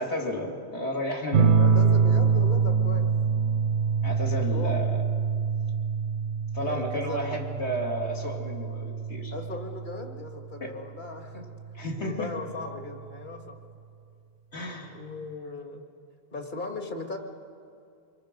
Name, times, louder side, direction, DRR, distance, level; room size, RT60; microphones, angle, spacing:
voice 1, 0.0-1.6 4.0-5.0 6.5-9.3 10.6-10.7 11.3-11.4 11.7-12.3 14.5-15.0, equal, 80° left, 0 dB, 2.8 m, -32 dB
sound 1, 1.3-10.4 11.8-12.4, right 6 dB, 90° right, 1.0 m, -25 dB
voice 2, 1.6-3.1 4.3-4.7 6.7-7.4 9.3-11.5 12.0-13.6 14.8-15.8 16.3-17.2, left 3 dB, 45° left, 4 dB, 2.0 m, -38 dB
25.5 x 23.0 x 5.2 m, 2.5 s
omnidirectional pair, 1.1 m